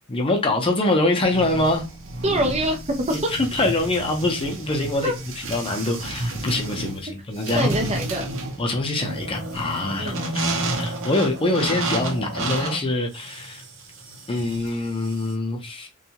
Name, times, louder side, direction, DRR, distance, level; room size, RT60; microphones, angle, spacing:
voice 1, 0.1-1.8 3.1-5.1 5.5-7.7 8.6-10.5 10.7-13.6 14.3-15.9, left 2 dB, 25° left, 0.5 m, -24 dB
sound 1, 1.3-15.3, right 2 dB, 75° right, 0.7 m, -31 dB
voice 2, 2.2-3.3 5.0-5.2 7.5-8.3 10.0-10.2, right 1 dB, 35° right, 0.6 m, -24 dB
2.6 x 2.3 x 2.8 m
head